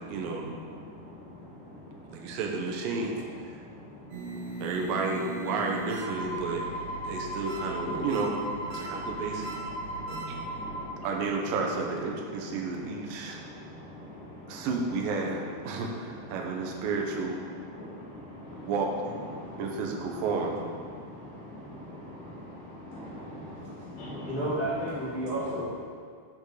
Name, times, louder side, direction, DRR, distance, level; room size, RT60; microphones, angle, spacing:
voice 1, 0.1-0.5 2.1-3.2 4.6-6.7 7.1-8.4 8.7-9.5 10.1-10.4 11.0-13.4 14.5-17.4 18.7-18.9 19.6-20.5, right 4 dB, 70° right, 0 dB, 2.2 m, -31 dB
sound 1, 4.1-10.8, right 1 dB, 90° right, 1.4 m, -36 dB
voice 2, 9.8-11.1 13.2-14.7 17.7-18.7 19.3-19.6 21.0-24.3, left 1 dB, 75° left, -9 dB, 4.5 m, -43 dB
voice 3, 24.2-25.7, right 1 dB, 45° left, -10 dB, 1.2 m, -31 dB
13.0 x 5.3 x 4.9 m, 2.1 s
omnidirectional pair, 5.3 m